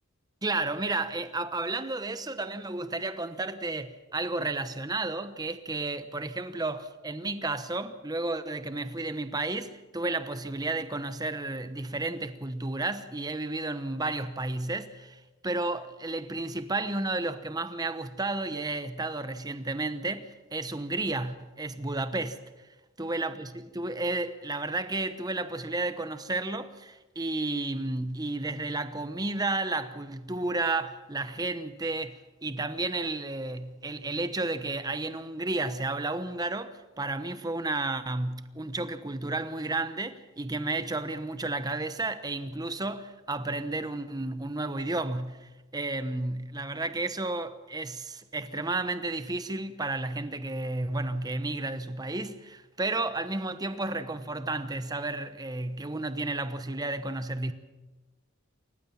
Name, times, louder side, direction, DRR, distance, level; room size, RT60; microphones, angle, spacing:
voice 1, 0.4-22.4 23.0-57.5, right 2 dB, 20° right, 1.0 m, -32 dB
28.0 x 15.5 x 7.1 m
head